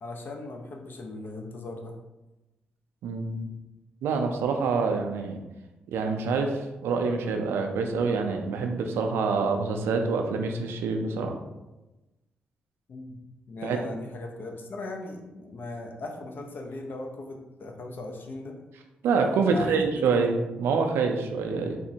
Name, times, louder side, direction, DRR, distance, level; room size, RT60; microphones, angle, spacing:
voice 1, 0.0-1.9 12.9-13.2 13.5-18.5 19.5-20.2, left 2 dB, 55° left, 2 dB, 0.5 m, -38 dB
voice 2, 3.0-3.5 4.0-5.4 5.9-11.3 13.6-13.8 19.0-21.8, right 4 dB, 75° right, 4 dB, 0.4 m, -26 dB
3.6 x 2.0 x 2.7 m, 1.0 s
hypercardioid pair, 45°, 4 cm